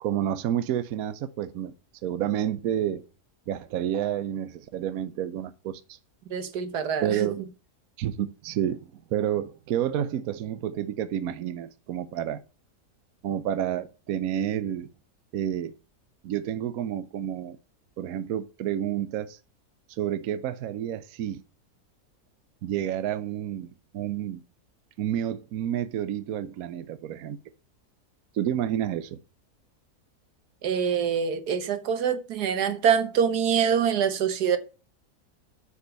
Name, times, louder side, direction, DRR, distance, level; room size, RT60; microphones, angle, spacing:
voice 1, 0.0-1.7 2.0-3.0 3.5-6.0 7.0-7.4 8.0-12.4 13.2-14.9 15.3-15.7 16.2-17.6 18.0-19.4 19.9-21.4 22.6-24.4 25.0-27.4 28.3-29.2, right 10 dB, 70° right, 1.1 m, -29 dB
voice 2, 6.3-7.3 30.6-34.6, right 7 dB, 85° right, 1.6 m, -25 dB
8.2 x 5.1 x 5.2 m
omnidirectional pair, 1.6 m